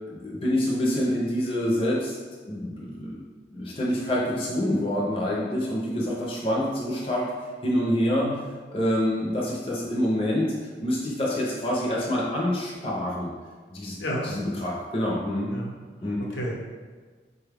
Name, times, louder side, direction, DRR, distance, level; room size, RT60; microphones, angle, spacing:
voice 1, 0.1-2.2 2.5-3.2 3.5-7.3 7.6-8.3 8.7-10.5 10.8-13.3 13.7-14.0 14.2-15.5 16.0-16.2, equal, 30° left, -5 dB, 0.5 m, -26 dB
voice 2, 16.2-16.5, equal, 80° left, -3 dB, 0.8 m, -31 dB
4.2 x 2.3 x 3.3 m, 1.4 s
head